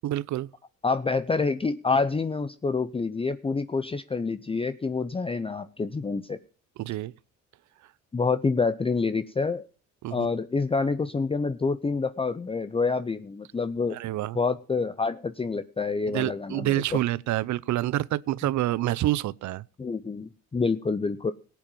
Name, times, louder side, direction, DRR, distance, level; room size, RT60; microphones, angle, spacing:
voice 1, 0.0-0.5 6.8-7.1 10.0-10.3 13.9-14.4 16.1-19.6, right 14 dB, 75° right, 0.6 m, -27 dB
voice 2, 0.8-6.4 8.1-9.7 10.1-14.0 14.3-16.7 19.8-21.3, left 4 dB, 20° left, 0.6 m, -27 dB
17.5 x 8.0 x 5.4 m
cardioid pair, 90°, 30 cm